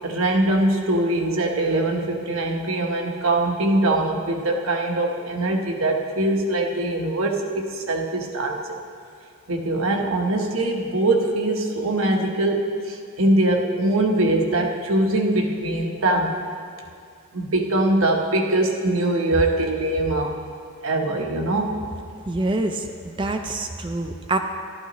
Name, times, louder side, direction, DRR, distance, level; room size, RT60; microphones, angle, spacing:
voice 1, 0.0-8.8 9.5-16.4 17.3-20.4 20.8-21.8, right 2 dB, 75° right, 2 dB, 1.1 m, -22 dB
voice 2, 22.3-24.4, right 2 dB, 25° right, 5 dB, 0.4 m, -26 dB
14.0 x 12.0 x 3.1 m, 2.4 s
head